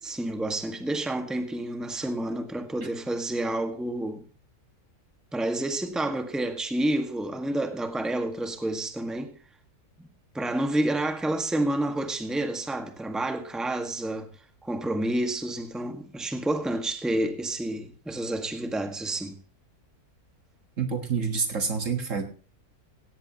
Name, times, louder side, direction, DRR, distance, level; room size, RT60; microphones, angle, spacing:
voice 1, 0.0-4.2 5.3-9.3 10.0-10.1 10.3-14.3 14.6-19.3, right 1 dB, ahead, 1.5 m, -29 dB
voice 2, 20.8-22.3, right 5 dB, 55° right, 1.9 m, -27 dB
17.5 x 17.0 x 3.0 m
omnidirectional pair, 1.6 m